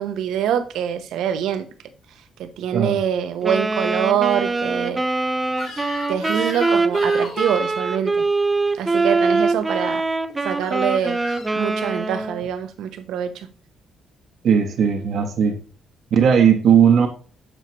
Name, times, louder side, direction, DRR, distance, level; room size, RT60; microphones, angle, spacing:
voice 1, 0.0-1.7 2.4-5.0 6.1-8.3 8.7-10.1 10.4-11.2 11.5-13.5, right 9 dB, 85° right, 0.8 m, -24 dB
Wind instrument woodwind instrument, 3.4-12.5, right 3 dB, 20° right, 0.6 m, -23 dB
Crying sobbing / Screech, 5.5-7.7 9.6-9.9 10.6-11.6, left 3 dB, 85° left, 3.2 m, -36 dB
voice 2, 14.4-15.6 16.1-17.1, right 7 dB, 70° right, 1.1 m, -16 dB
7.7 x 4.4 x 3.0 m
cardioid pair, 90°, 0 cm